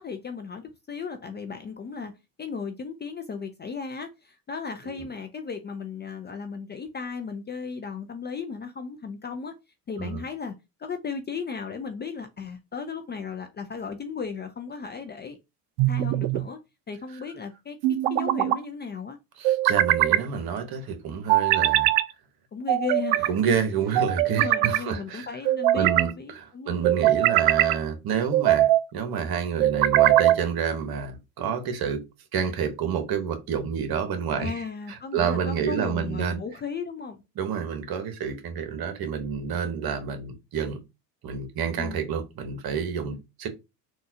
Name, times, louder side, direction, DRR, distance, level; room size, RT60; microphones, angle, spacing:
voice 1, 0.0-2.1 2.4-9.5 9.9-10.5 10.8-15.4 15.9-16.6 16.9-17.8 18.1-19.2 22.5-23.6 24.3-26.8 34.4-37.2 41.8-42.0 43.1-43.2, left 5 dB, 20° left, 0.5 m, -35 dB
sound 1, 15.8-16.5 17.8-18.6 19.4-20.3 21.3-22.1 22.7-23.3 24.0-24.8 25.5-26.1 26.8-27.8 28.3-28.8 29.6-30.4, right 14 dB, 65° right, 0.5 m, -21 dB
voice 2, 19.4-21.9 23.3-25.3 25.7-32.0 32.3-36.4 37.4-40.8 41.2-43.5, right 7 dB, 50° right, 1.1 m, -29 dB
3.8 x 2.5 x 2.8 m
hypercardioid pair, 75°, 49 cm